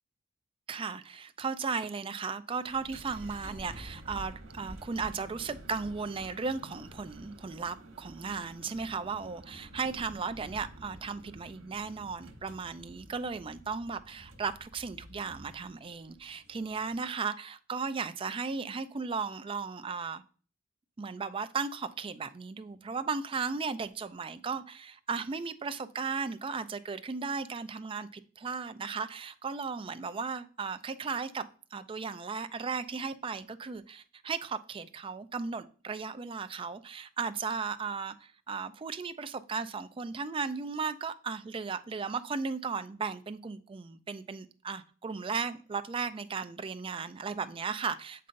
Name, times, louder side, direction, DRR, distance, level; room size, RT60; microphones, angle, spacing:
voice 1, 0.7-20.2 21.0-48.3, right 5 dB, 25° right, 0.4 m, -36 dB
sound 1, 2.7-17.1, right 1 dB, 85° right, 1.3 m, -50 dB
7.5 x 5.4 x 2.5 m
head